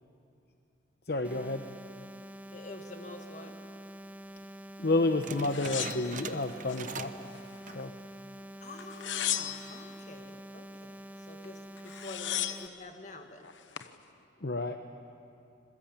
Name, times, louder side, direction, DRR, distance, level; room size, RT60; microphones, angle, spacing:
voice 1, 1.1-1.6 4.8-7.3 7.7-7.9 14.4-14.8, left 2 dB, 55° left, 6 dB, 0.9 m, -30 dB
sound 1, 1.2-12.7, right 1 dB, 10° right, 0.6 m, -47 dB
voice 2, 2.5-3.5 8.6-13.4, left 2 dB, 40° left, 4 dB, 2.0 m, -47 dB
sound 2, 5.2-7.3 7.6-7.9 8.4-8.5 9.2-9.6, right 5 dB, 45° right, 0.9 m, -43 dB
sound 3, 5.5-6.8 7.3-8.1 8.8-9.9 11.4-11.5 11.8-12.8 13.4-13.9, left 11 dB, 80° left, 0.9 m, -36 dB
26.5 x 21.5 x 8.8 m, 2.6 s
head